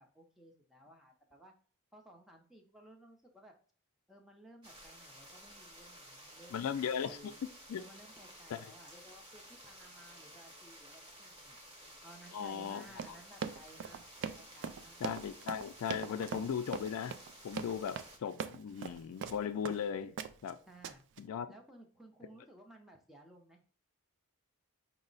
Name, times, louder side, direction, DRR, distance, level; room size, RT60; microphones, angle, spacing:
voice 1, 0.0-1.5 1.9-3.5 4.1-7.4 7.8-11.6 12.0-14.1 14.4-15.0 20.7-21.0 21.5-23.6, right 1 dB, ahead, 0.6 m, -58 dB
sound 1, 4.6-18.2, equal, 20° right, 1.0 m, -54 dB
voice 2, 6.5-7.3 7.7-7.8 8.5-8.6 12.3-12.8 15.0-17.1 17.4-20.2 20.4-20.6 21.2-21.5, left 7 dB, 75° left, 0.3 m, -37 dB
Run, 12.9-19.8 20.2-20.5 20.8-21.2, right 6 dB, 55° right, 0.3 m, -41 dB
5.2 x 2.0 x 3.8 m
head